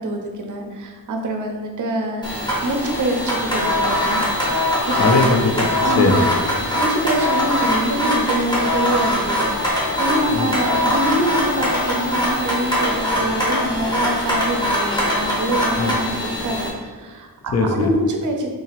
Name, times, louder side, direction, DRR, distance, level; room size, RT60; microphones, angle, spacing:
voice 1, 0.0-4.2 5.8-6.2 6.7-18.5, right 1 dB, 50° right, 3 dB, 0.5 m, -25 dB
sound 1, 2.2-16.7, left 1 dB, 10° left, 0.7 m, -22 dB
voice 2, 5.0-5.7 6.0-6.6 10.3-10.5 15.8-15.9 17.5-17.9, left 3 dB, 40° left, 3 dB, 0.4 m, -19 dB
sound 2, 9.4-14.4, left 6 dB, 55° left, 1.0 m, -34 dB
3.7 x 2.8 x 2.9 m, 1.5 s
wide cardioid pair, 165°, 40 cm